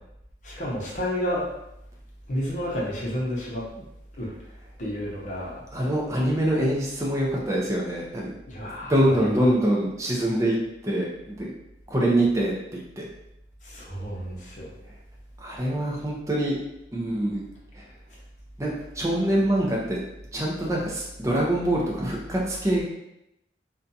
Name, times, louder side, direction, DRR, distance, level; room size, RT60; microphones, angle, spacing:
voice 1, 0.4-1.5 2.3-3.6 4.2-4.3 4.8-5.6 8.5-8.9 13.7-14.7, equal, 45° left, -4 dB, 0.7 m, -30 dB
voice 2, 5.7-8.3 8.9-10.6 10.8-11.5 11.9-13.0 15.4-16.6 16.9-17.4 17.7-17.8 18.6-20.0 20.3-22.8, right 1 dB, 15° right, -3 dB, 0.5 m, -24 dB
2.5 x 2.2 x 2.6 m, 0.85 s
head